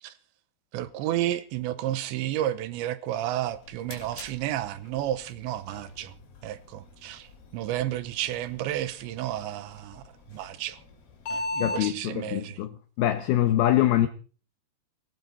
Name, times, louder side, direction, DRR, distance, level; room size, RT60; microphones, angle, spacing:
voice 1, 0.7-6.1 6.4-7.3 7.5-10.0 10.3-10.8 11.3-12.6, right 13 dB, 80° right, 3.1 m, -31 dB
sound 1, 3.4-11.8, left 2 dB, 60° left, 4.6 m, -41 dB
voice 2, 11.6-14.1, left 13 dB, 80° left, 2.2 m, -24 dB
18.0 x 17.0 x 4.1 m
omnidirectional pair, 5.5 m